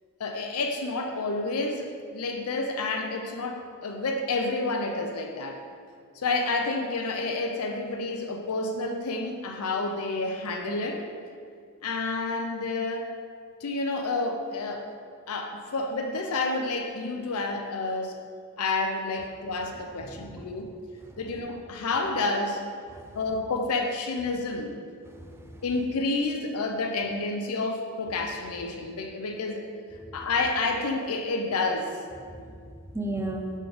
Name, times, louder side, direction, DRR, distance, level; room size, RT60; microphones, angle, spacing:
voice 1, 0.2-5.6 6.2-11.0 11.8-13.1 13.6-14.9 15.3-18.2 18.6-20.7 21.2-22.6 23.1-24.8 25.6-29.7 30.1-32.0, left 3 dB, 85° left, 3 dB, 0.6 m, -29 dB
voice 2, 20.0-20.5 22.9-23.1 25.0-25.6 30.0-30.3 32.2-32.6 32.9-33.4, right 1 dB, 10° right, 2 dB, 0.5 m, -36 dB
6.2 x 3.9 x 5.2 m, 2.1 s
head